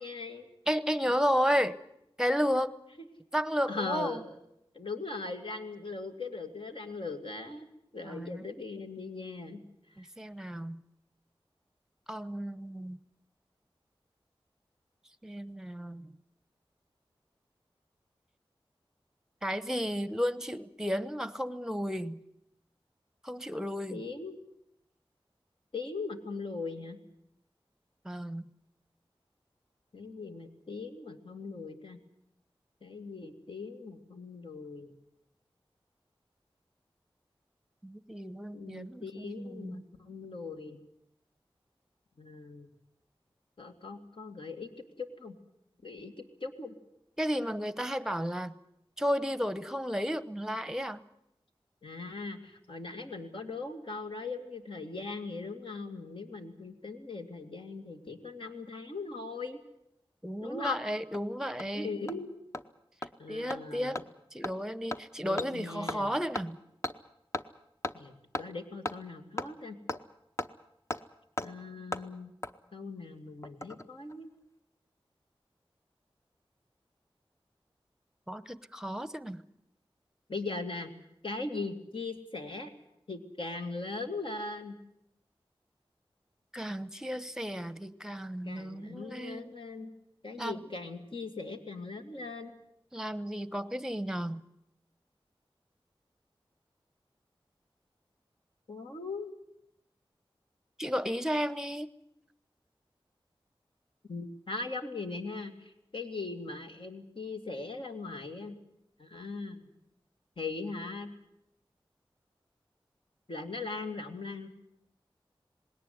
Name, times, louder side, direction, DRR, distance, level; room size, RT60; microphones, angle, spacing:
voice 1, 0.0-0.5 3.0-3.1 3.7-4.4 4.7-9.6 10.0-10.1 23.9-24.4 25.7-27.0 29.9-32.0 32.8-34.9 38.5-40.8 42.2-42.7 43.6-44.7 45.0-45.3 45.8-46.7 51.8-59.6 60.4-60.8 61.7-62.3 63.2-64.0 65.2-66.1 67.9-69.8 71.4-72.3 72.7-74.3 80.3-80.9 81.2-82.7 83.1-84.8 88.5-89.9 90.2-92.5 98.7-99.3 104.1-108.6 109.0-109.7 110.4-111.1 113.3-114.5, left 3 dB, 65° left, 4 dB, 2.4 m, -39 dB
voice 2, 0.7-1.8 2.2-2.7 3.3-4.2 8.0-8.5 10.0-10.8 12.1-13.0 15.2-16.1 19.4-22.2 23.2-24.0 28.0-28.5 37.8-39.9 47.2-48.6 49.0-51.0 60.2-61.9 63.3-64.0 64.3-66.6 78.3-79.4 86.5-89.5 90.4-90.6 92.9-94.4 100.8-101.9, equal, 5° right, 16 dB, 1.0 m, -33 dB
Hammer, 60.7-60.8 61.1-61.2 61.6-61.7 62.1-62.2 62.5-62.6 63.0-63.1 63.5-63.6 64.0-64.1 64.4-64.5 64.9-65.0 65.4-65.5 65.9-66.0 66.4-66.5 66.8-66.9 67.3-67.4 67.8-67.9 68.3-68.4 68.9-69.0 69.4-69.5 69.9-70.0 70.4-70.5 70.9-71.0 71.4-71.5 71.9-72.0 72.4-72.5 73.4-73.8 74.1-74.2, left 1 dB, 30° left, 0.9 m, -35 dB
20.5 x 18.0 x 9.6 m, 0.80 s
wide cardioid pair, 55°, 10 cm